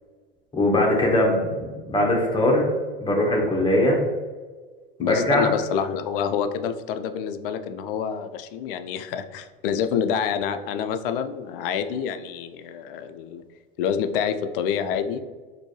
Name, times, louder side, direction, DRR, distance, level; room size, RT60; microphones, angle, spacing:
voice 1, 0.5-2.7 3.0-4.0 5.0-5.5, left 1 dB, 15° left, -1 dB, 1.2 m, -21 dB
voice 2, 5.0-13.4 13.8-15.2, left 7 dB, 70° left, 9 dB, 0.4 m, -27 dB
4.3 x 2.6 x 3.1 m, 1.4 s
hypercardioid pair, 90°, 29 cm